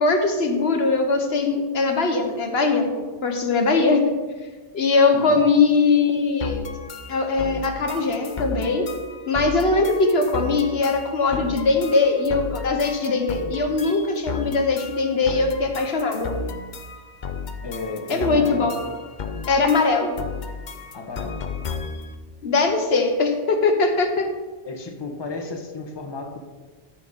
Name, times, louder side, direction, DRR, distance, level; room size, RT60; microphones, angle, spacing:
voice 1, 0.0-4.1 4.7-6.7 7.1-8.9 9.3-16.3 18.1-18.7 19.5-20.1 22.4-24.3, left 3 dB, 75° left, 4 dB, 1.3 m, -21 dB
sound 1, 6.4-22.1, left 5 dB, 50° left, 0.8 m, -34 dB
voice 2, 17.6-18.8 20.9-21.4 24.6-26.4, left 3 dB, 25° left, 3 dB, 1.0 m, -33 dB
13.5 x 5.8 x 4.1 m, 1.3 s
omnidirectional pair, 1.1 m